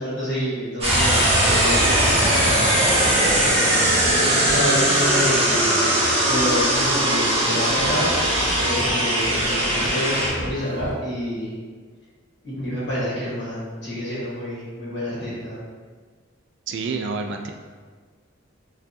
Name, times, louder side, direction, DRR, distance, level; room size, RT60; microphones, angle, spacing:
voice 1, 0.0-3.7 4.0-5.6 6.3-8.2 8.6-11.5 12.4-15.6, equal, 55° left, -8 dB, 1.4 m, -28 dB
sound 1, 0.8-10.3, right 1 dB, 30° right, 0.9 m, -20 dB
sound 2, 0.9-10.9, equal, 75° left, 0.8 m, -35 dB
voice 2, 16.7-17.5, right 4 dB, 60° right, 4 dB, 0.3 m, -28 dB
4.4 x 2.5 x 2.7 m, 1.5 s
head